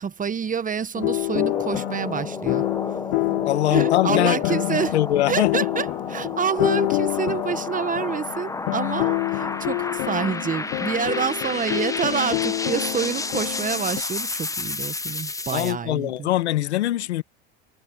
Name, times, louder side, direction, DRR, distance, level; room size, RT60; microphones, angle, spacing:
voice 1, 0.0-2.7 3.7-4.9 5.3-16.3, right 6 dB, 25° right, 1.2 m, -27 dB
sound 1, 1.0-14.0, left 26 dB, 70° left, 0.7 m, -27 dB
sound 2, 1.1-15.7, left 3 dB, 10° left, 1.1 m, -32 dB
voice 2, 3.4-5.8 15.5-17.2, left 14 dB, 90° left, 1.8 m, -23 dB
hypercardioid pair, 90°, 32 cm